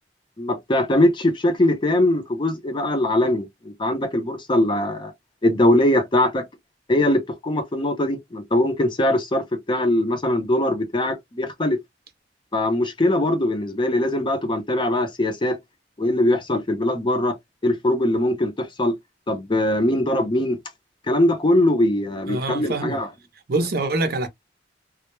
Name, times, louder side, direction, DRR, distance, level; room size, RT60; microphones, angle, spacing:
voice 1, 0.4-5.1 5.4-6.5 6.9-11.8 12.5-15.6 16.0-17.4 17.6-18.9 19.3-20.6 21.1-23.1, left 1 dB, 25° left, 0.5 m, -21 dB
voice 2, 22.3-23.0 23.5-24.3, right 2 dB, 60° right, 0.6 m, -24 dB
2.2 x 2.1 x 2.9 m
head